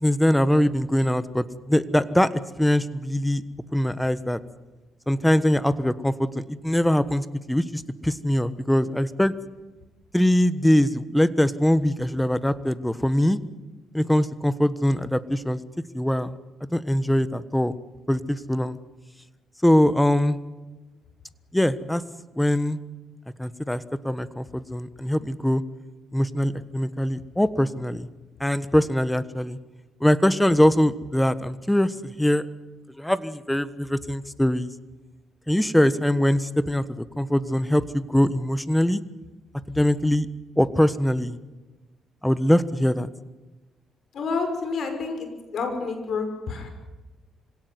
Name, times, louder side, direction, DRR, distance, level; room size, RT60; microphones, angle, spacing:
voice 1, 0.0-2.3 2.6-3.4 3.7-4.4 5.1-9.3 10.1-13.4 13.9-15.6 15.9-16.4 16.7-17.8 18.1-18.8 19.6-20.4 21.5-22.0 22.3-22.8 23.4-25.6 26.1-28.1 28.4-29.6 30.0-32.4 33.0-34.7 35.5-39.0 39.7-40.3 40.6-41.4 42.2-43.1, left 1 dB, 5° left, 14 dB, 1.3 m, -22 dB
voice 2, 44.1-46.7, left 4 dB, 60° left, 6 dB, 6.0 m, -29 dB
26.0 x 17.5 x 9.7 m, 1.2 s
cardioid pair, 90°, 0 cm